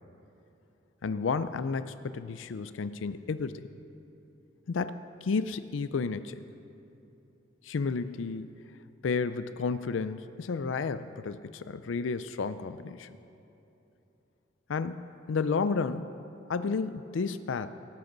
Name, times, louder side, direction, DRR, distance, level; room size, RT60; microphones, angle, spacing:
voice 1, 1.0-3.6 4.7-6.4 7.6-8.5 9.0-13.1 14.7-16.1 16.5-17.7, left 4 dB, 85° left, 13 dB, 0.4 m, -32 dB
17.5 x 13.0 x 3.9 m, 2.9 s
head